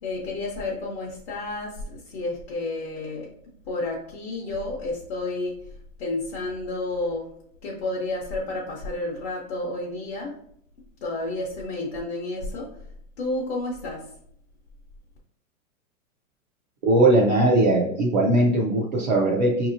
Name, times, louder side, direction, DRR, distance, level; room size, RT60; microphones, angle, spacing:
voice 1, 0.0-3.3 3.6-7.3 7.6-10.3 11.0-12.8 13.2-14.1, left 2 dB, 45° left, -3 dB, 0.8 m, -31 dB
voice 2, 16.8-19.7, right 2 dB, 35° right, -4 dB, 0.4 m, -20 dB
5.1 x 2.8 x 2.5 m, 0.70 s
hypercardioid pair, 160°, 43 cm